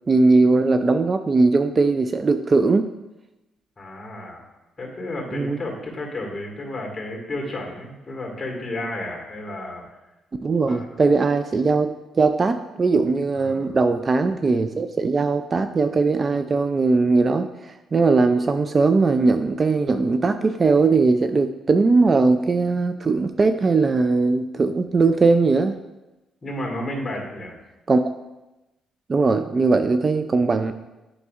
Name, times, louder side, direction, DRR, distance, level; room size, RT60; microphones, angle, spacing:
voice 1, 0.1-2.9 5.3-5.6 10.4-25.8 27.9-28.0 29.1-30.7, right 3 dB, 35° right, 8 dB, 0.3 m, -19 dB
voice 2, 3.8-4.4 4.8-9.8 10.7-10.9 13.4-13.7 24.6-24.9 26.4-27.5, left 1 dB, 25° left, 0 dB, 1.8 m, -32 dB
8.2 x 5.3 x 2.4 m, 1.0 s
cardioid pair, 90°, 0 cm